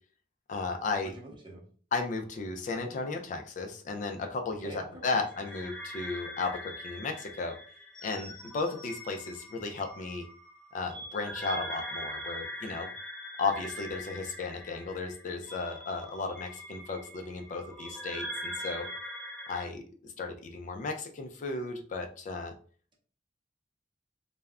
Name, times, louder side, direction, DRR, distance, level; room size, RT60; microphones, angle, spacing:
voice 1, 0.5-1.1 1.9-7.6 8.0-10.3 10.7-12.9 13.4-18.9 19.5-19.8 20.2-22.5, left 3 dB, 40° left, 4 dB, 0.3 m, -34 dB
voice 2, 1.0-1.6 4.6-5.4, right 2 dB, 25° right, -1 dB, 0.7 m, -47 dB
sound 1, 5.2-19.6, equal, ahead, 0.8 m, -42 dB
2.2 x 2.0 x 3.5 m, 0.43 s
head